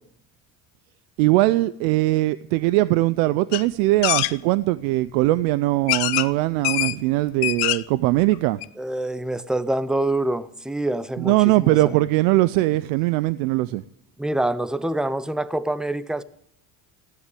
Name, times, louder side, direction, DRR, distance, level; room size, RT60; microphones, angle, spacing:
voice 1, 1.2-8.6 11.2-13.8, right 18 dB, 90° right, 0.6 m, -20 dB
sound 1, 3.5-3.6 4.0-4.3 5.2-5.3 5.9-6.3 6.6-7.0 7.3-7.9 8.3-8.4 8.6-8.7, left 19 dB, 75° left, 0.8 m, -23 dB
voice 2, 8.8-12.0 14.2-16.2, right 1 dB, ahead, 0.7 m, -26 dB
15.5 x 11.0 x 8.4 m
supercardioid pair, 100°, 40 cm